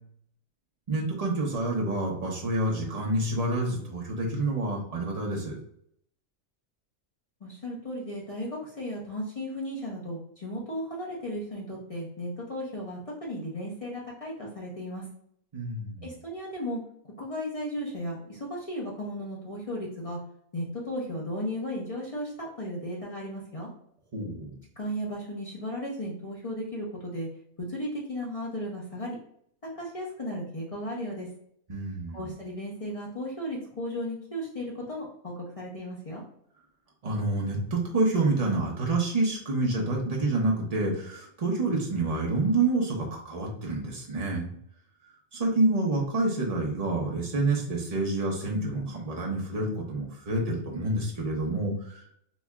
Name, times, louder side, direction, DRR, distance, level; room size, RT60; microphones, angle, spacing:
voice 1, 0.9-5.5 15.5-16.1 24.1-24.6 31.7-32.2 37.0-44.5 45.3-52.1, right 2 dB, 35° right, -2 dB, 0.7 m, -28 dB
voice 2, 7.4-15.0 16.0-16.8 17.2-20.2 20.5-23.7 24.8-27.3 27.7-29.2 29.6-31.3 32.1-36.2, equal, 35° left, -3 dB, 0.6 m, -35 dB
4.2 x 2.7 x 2.3 m, 0.68 s
omnidirectional pair, 1.5 m